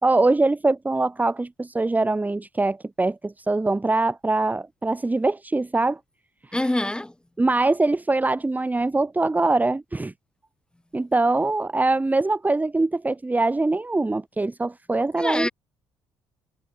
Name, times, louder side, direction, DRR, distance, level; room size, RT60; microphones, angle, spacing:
voice 1, 0.0-6.0 7.4-10.1 10.9-15.5, right 2 dB, 15° right, 1.7 m, -23 dB
voice 2, 6.5-7.1 15.2-15.5, left 1 dB, 10° left, 6.2 m, -25 dB
supercardioid pair, 65°, 10 cm